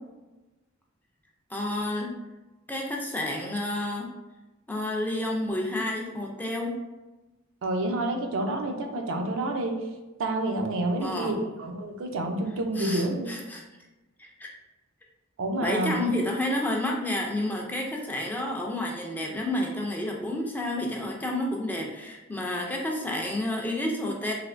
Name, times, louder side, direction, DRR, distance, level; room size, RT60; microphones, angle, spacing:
voice 1, 1.5-2.1 2.7-4.1 4.7-6.8 11.0-11.6 12.8-13.6 14.2-14.5 15.6-24.3, left 1 dB, 10° left, -1 dB, 0.4 m, -30 dB
voice 2, 7.6-9.8 10.2-13.3 15.4-15.9, right 2 dB, 65° right, 3 dB, 0.4 m, -28 dB
3.3 x 3.0 x 2.5 m, 1.1 s
head